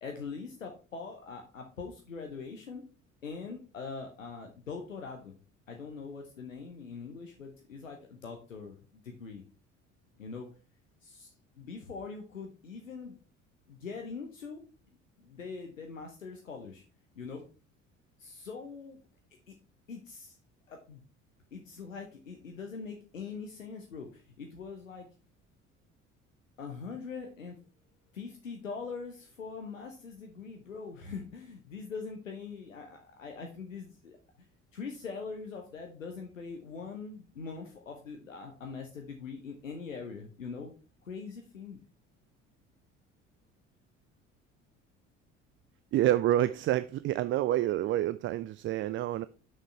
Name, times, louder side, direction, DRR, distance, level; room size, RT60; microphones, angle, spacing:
voice 1, 0.0-2.8 3.2-5.3 5.7-9.4 10.2-10.5 11.0-13.2 13.7-14.6 15.2-16.8 17.2-17.4 18.2-19.0 19.5-19.6 19.9-20.4 20.7-21.0 21.5-25.1 26.6-27.6 28.1-34.2 34.7-40.7 41.0-41.8, left 5 dB, 85° left, 3 dB, 0.9 m, -42 dB
voice 2, 45.9-49.3, right 13 dB, 35° right, 15 dB, 0.4 m, -28 dB
6.3 x 6.3 x 4.5 m, 0.35 s
figure-of-eight pair, 55°, 38 cm